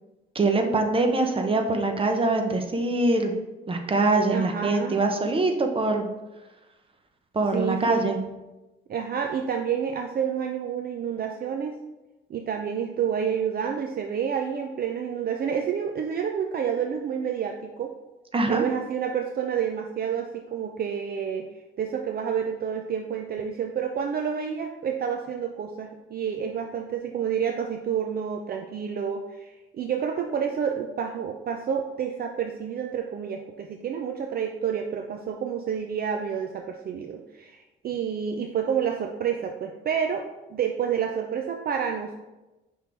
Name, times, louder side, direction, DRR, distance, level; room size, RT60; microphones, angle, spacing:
voice 1, 0.3-3.3 3.7-6.1 7.3-8.2 18.3-18.6, right 2 dB, 25° right, 4 dB, 0.9 m, -23 dB
voice 2, 4.3-5.0 7.5-8.0 8.9-11.8 12.3-17.9 18.5-21.5 21.8-42.2, right 7 dB, 50° right, 4 dB, 0.5 m, -29 dB
5.8 x 3.7 x 4.4 m, 1.0 s
cardioid pair, 90°, 20 cm